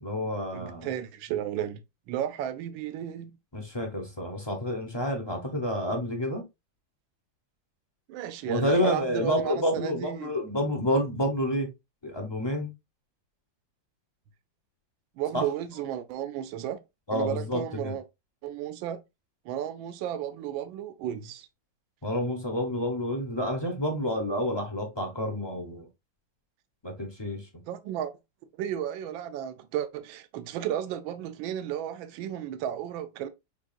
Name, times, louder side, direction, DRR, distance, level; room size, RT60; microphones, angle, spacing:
voice 1, 0.0-0.9 3.5-6.5 8.5-11.7 12.0-12.7 15.3-15.5 17.1-18.0 22.0-25.9 26.8-27.5, left 1 dB, 25° left, 0.5 m, -29 dB
voice 2, 0.5-1.8 2.1-3.3 8.1-10.3 15.2-16.8 17.1-18.0 18.4-19.0 19.4-21.5 27.7-28.1 28.6-33.3, right 10 dB, 80° right, 1.4 m, -33 dB
6.1 x 3.6 x 2.4 m
omnidirectional pair, 2.1 m